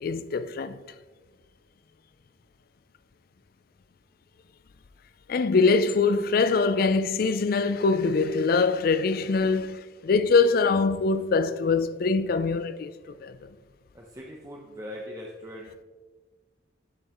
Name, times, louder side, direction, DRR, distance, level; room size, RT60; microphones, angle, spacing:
voice 1, 0.0-0.8 5.3-13.5, left 4 dB, 50° left, 0.4 m, -23 dB
voice 2, 13.9-15.8, equal, 20° right, 0.6 m, -41 dB
11.0 x 5.2 x 3.0 m
head